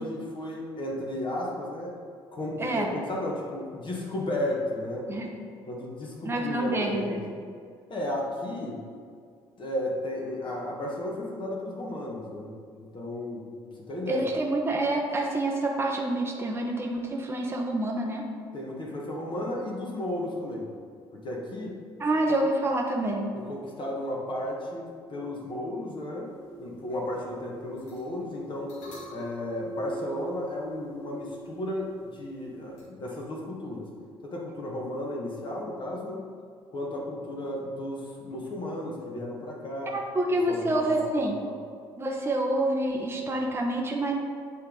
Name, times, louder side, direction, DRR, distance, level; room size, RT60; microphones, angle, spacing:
voice 1, 0.0-1.9 2.3-5.1 5.6-7.2 7.9-8.8 9.6-12.5 12.7-13.5 13.9-14.3 18.5-20.7 21.1-21.8 23.3-26.3 26.6-28.8 29.1-33.9 34.2-36.3 36.7-40.0 40.5-41.1 41.4-41.6, left 1 dB, 40° left, -2 dB, 1.2 m, -34 dB
voice 2, 2.6-2.9 5.1-5.3 6.2-7.2 14.1-18.3 22.0-23.3 39.9-41.4 42.0-44.1, right 1 dB, 20° right, 0 dB, 0.8 m, -27 dB
sound 1, 26.2-32.8, right 2 dB, 65° left, 1.4 m, -45 dB
8.1 x 3.3 x 3.8 m, 2.1 s
figure-of-eight pair, 50°, 13 cm